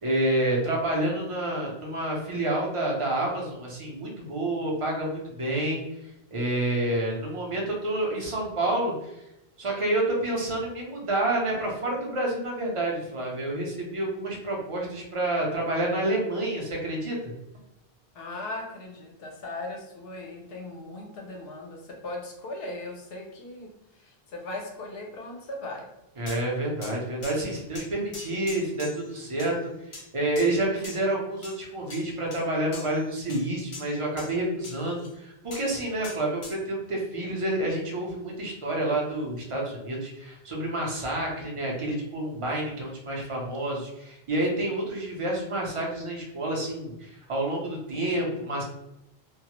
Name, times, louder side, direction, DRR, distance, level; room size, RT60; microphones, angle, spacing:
voice 1, 0.0-5.8 6.3-9.2 9.6-17.2 26.2-48.6, right 1 dB, 35° right, -2 dB, 0.6 m, -29 dB
voice 2, 18.1-23.7 24.0-25.9, left 2 dB, 70° left, 1 dB, 0.8 m, -38 dB
sound 1, 26.3-26.4 26.8-27.0 27.2-27.4 27.7-29.1 29.4-29.5 29.9-30.1 30.4-31.0 31.4-31.6 31.9-32.4 32.7-33.0 33.3-34.3 34.6-35.1 35.5-35.7 36.0-36.6, left 3 dB, 45° left, 0.4 m, -42 dB
2.2 x 2.0 x 2.9 m, 0.91 s
omnidirectional pair, 1.0 m